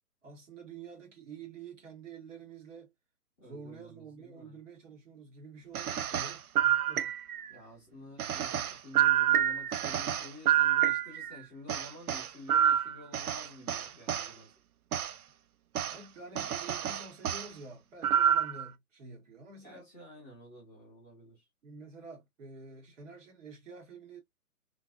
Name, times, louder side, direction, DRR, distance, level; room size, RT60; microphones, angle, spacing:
voice 1, 0.2-2.9 3.4-7.1 15.8-19.9 21.6-24.2, right 4 dB, 50° right, 1.9 m, -48 dB
voice 2, 3.4-4.6 7.5-14.5 19.6-21.5, left 1 dB, 5° left, 0.6 m, -51 dB
sound 1, 5.7-7.5 8.2-11.4 11.7-14.3 14.9-15.1 15.7-16.0 16.4-17.5 18.0-18.6, right 10 dB, 65° right, 0.5 m, -28 dB
3.2 x 2.5 x 2.5 m
figure-of-eight pair, 135°, 47 cm